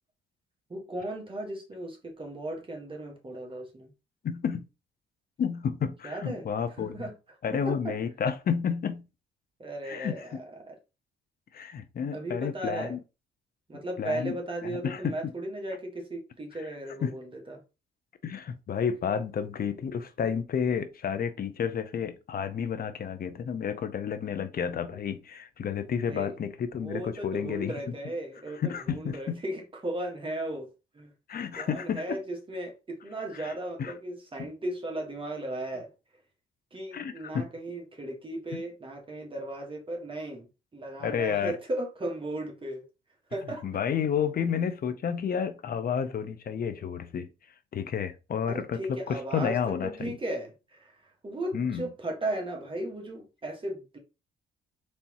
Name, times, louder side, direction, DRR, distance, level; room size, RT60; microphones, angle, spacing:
voice 1, 0.7-3.9 6.0-6.5 6.8-7.1 7.5-7.9 9.6-10.8 12.1-13.0 13.7-17.6 26.0-26.3 26.7-31.1 31.5-35.9 36.7-40.5 40.7-42.8 43.3-43.7 48.5-54.0, right 1 dB, 25° right, 1.6 m, -36 dB
voice 2, 4.2-4.7 5.4-7.0 7.4-9.1 9.9-10.4 11.5-13.0 14.0-14.3 14.6-15.3 17.0-17.1 18.2-27.7 28.6-29.4 31.3-32.2 33.4-33.5 33.8-33.9 34.4-34.5 36.9-37.5 41.0-41.5 43.6-47.3 47.7-50.2 51.5-51.9, left 7 dB, 50° left, 0.7 m, -31 dB
4.2 x 3.4 x 3.0 m
cardioid pair, 90°, 20 cm